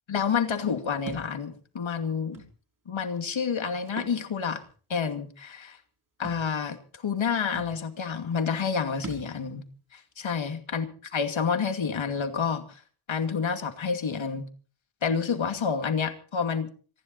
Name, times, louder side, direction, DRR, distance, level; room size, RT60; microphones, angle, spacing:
voice 1, 0.1-2.4 2.9-4.6 4.9-5.8 6.2-9.6 9.9-12.8 13.1-14.5 15.0-16.7, left 6 dB, 65° left, 7 dB, 2.6 m, -29 dB
Thump thud, 1.1-1.3 2.3-2.5 3.8-4.2 4.6-4.7 6.2-6.5 7.2-7.3 7.5-7.8 9.0-9.3, right 3 dB, 40° right, 4.3 m, -40 dB
27.0 x 11.5 x 4.1 m, 0.39 s
wide cardioid pair, 85°, 49 cm